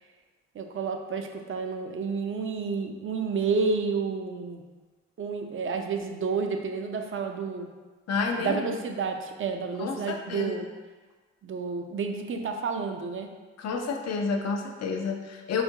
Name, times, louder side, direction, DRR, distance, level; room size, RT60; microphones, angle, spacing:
voice 1, 0.5-4.6 5.2-7.7 8.4-10.7 11.4-13.3, right 5 dB, 40° right, 4 dB, 0.5 m, -30 dB
voice 2, 8.1-8.7 9.8-10.5 13.6-15.6, left 4 dB, 55° left, 3 dB, 0.5 m, -30 dB
4.3 x 2.4 x 2.7 m, 1.3 s
supercardioid pair, 45°, 30 cm